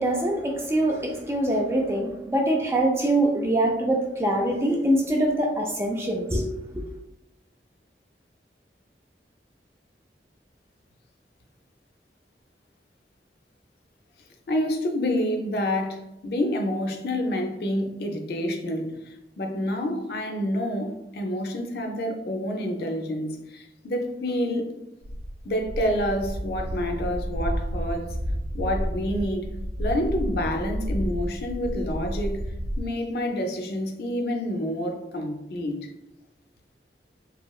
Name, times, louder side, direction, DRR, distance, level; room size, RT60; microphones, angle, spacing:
voice 1, 0.0-6.5 6.7-6.9, right 1 dB, 15° right, 0 dB, 0.3 m, -24 dB
voice 2, 14.5-24.8 25.4-28.1 28.5-29.5 29.8-32.5 32.8-35.9, left 1 dB, 60° left, 3 dB, 0.4 m, -28 dB
sound 1, 25.0-32.8, equal, 90° right, 0.4 m, -31 dB
3.0 x 2.6 x 2.3 m, 0.90 s
head